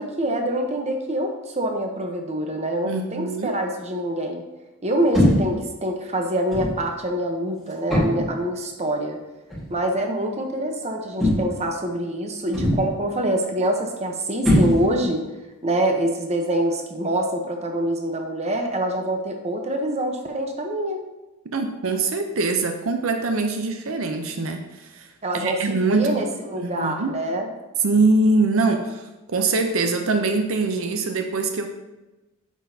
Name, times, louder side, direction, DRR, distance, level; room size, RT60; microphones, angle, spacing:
voice 1, 0.0-4.4 4.8-9.2 9.7-15.3 15.6-21.0 25.2-27.5, right 1 dB, 30° right, 4 dB, 0.8 m, -25 dB
voice 2, 2.8-3.6 21.5-25.1 25.3-26.2 26.6-27.1 27.8-29.0 29.3-31.7, right 3 dB, 70° right, 6 dB, 0.6 m, -23 dB
sound 1, 5.1-5.6 6.5-6.8 7.9-8.4 9.5-9.7 11.2-11.7 12.5-13.0 14.4-15.1, equal, ahead, 1.7 m, -21 dB
9.1 x 6.2 x 2.8 m, 1.1 s
head